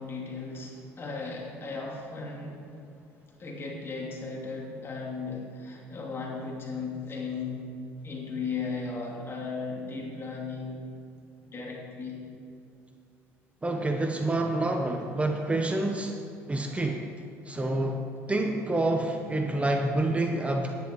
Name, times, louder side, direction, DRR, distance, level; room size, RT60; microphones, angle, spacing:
voice 1, 0.0-2.9 3.2-7.7 8.0-10.8 11.5-12.3, left 4 dB, 35° left, -2 dB, 3.0 m, -36 dB
voice 2, 13.6-16.2 16.5-17.1 17.4-20.8, right 2 dB, 20° right, 3 dB, 1.0 m, -28 dB
10.0 x 10.0 x 4.7 m, 2.6 s
supercardioid pair, 75°, 7 cm